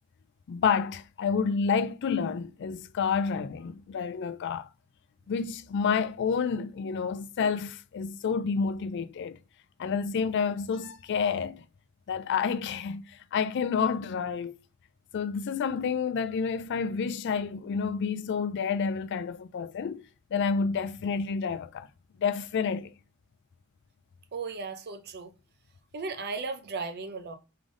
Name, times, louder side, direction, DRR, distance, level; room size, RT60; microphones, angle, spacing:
voice 1, 0.5-4.7 5.3-9.4 9.8-11.6 12.1-14.6 15.1-20.0 20.3-21.9 22.2-22.9, left 6 dB, 55° left, 0.3 m, -29 dB
voice 2, 24.3-25.3 25.9-27.4, right 4 dB, 45° right, 0.6 m, -36 dB
3.8 x 3.4 x 3.7 m
head